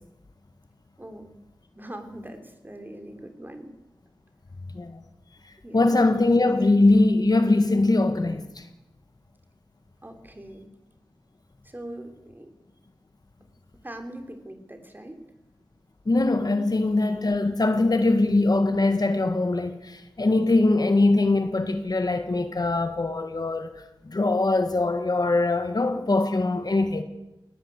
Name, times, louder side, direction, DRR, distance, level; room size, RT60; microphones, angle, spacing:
voice 1, 1.0-1.3 1.8-3.7 5.6-6.0 10.0-10.7 11.6-12.5 13.8-15.2, right 1 dB, 20° right, 3.2 m, -41 dB
voice 2, 5.7-8.6 16.0-23.7 24.0-27.0, left 2 dB, 50° left, 1.7 m, -22 dB
19.5 x 17.0 x 8.3 m
wide cardioid pair, 80°, 9 cm